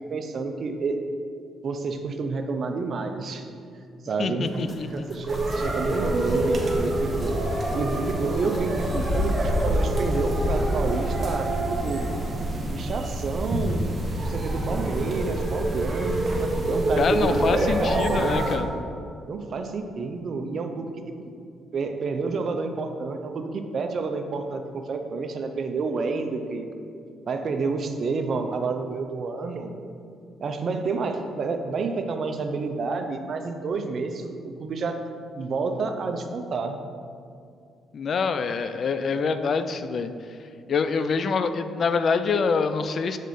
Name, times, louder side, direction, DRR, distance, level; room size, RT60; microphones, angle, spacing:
voice 1, 0.1-1.0 1.6-3.5 4.0-7.3 7.7-12.1 12.7-18.6 19.3-20.9 21.7-26.7 27.3-29.8 30.4-35.0 35.4-36.8, right 4 dB, 55° right, 6 dB, 0.6 m, -29 dB
voice 2, 4.2-4.9 17.0-18.7 37.9-40.1 40.7-43.2, left 5 dB, 55° left, 10 dB, 0.4 m, -25 dB
sound 1, 4.4-10.6, left 1 dB, 40° left, 0.8 m, -31 dB
sound 2, 5.3-18.6, right 1 dB, 35° right, 1.0 m, -26 dB
6.5 x 3.8 x 5.0 m, 2.4 s
cardioid pair, 90°, 0 cm